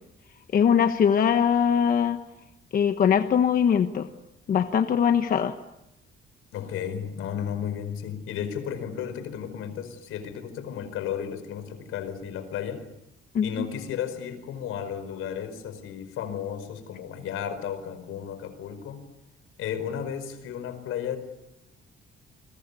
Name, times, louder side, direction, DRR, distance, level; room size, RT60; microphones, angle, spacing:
voice 1, 0.5-2.2 2.7-4.1 4.5-5.5 13.3-13.7, left 7 dB, 45° left, 7 dB, 1.2 m, -21 dB
voice 2, 6.5-12.8 13.4-19.0 19.6-21.2, left 8 dB, 90° left, 10 dB, 5.0 m, -33 dB
29.0 x 22.0 x 8.5 m, 0.88 s
cardioid pair, 170°, 21 cm